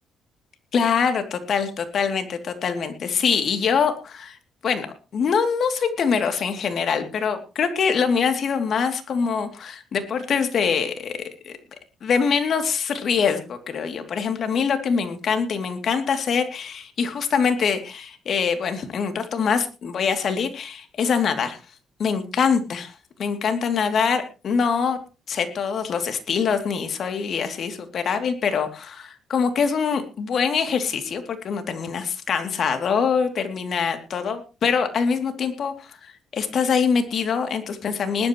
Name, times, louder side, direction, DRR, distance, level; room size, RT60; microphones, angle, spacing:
voice 1, 0.7-4.4 4.6-4.9 5.1-11.5 12.0-21.6 22.0-25.0 25.3-38.3, left 6 dB, 60° left, 7 dB, 2.8 m, -24 dB
20.0 x 12.0 x 3.1 m, 0.31 s
cardioid pair, 90°, 0 cm